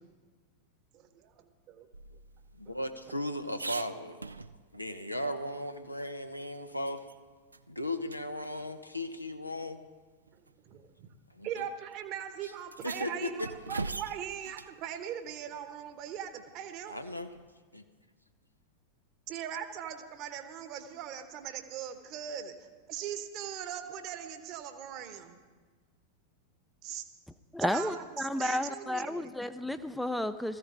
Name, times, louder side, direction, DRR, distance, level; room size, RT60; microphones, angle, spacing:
voice 1, 0.9-1.9 2.7-2.8 3.1-3.2 10.3-11.1 11.4-17.0 19.3-25.4 26.8-27.0 27.6-29.3, right 9 dB, 40° right, 1.1 m, -40 dB
sound 1, 1.9-4.9 5.3-5.4 5.7-7.2 7.5-7.7 8.1-8.2 9.3-9.4 10.3-10.5 11.5-11.7 11.9-12.0 12.6-14.8 17.1-17.5, right 3 dB, 80° right, 0.4 m, -43 dB
voice 2, 2.5-4.2 4.7-7.0 7.7-9.9 11.3-11.6 12.8-13.5 16.9-17.3 17.7-17.8, left 1 dB, 90° left, 0.9 m, -36 dB
voice 3, 27.5-30.6, left 1 dB, 5° left, 0.5 m, -32 dB
18.5 x 14.5 x 3.8 m
figure-of-eight pair, 90°, 0 cm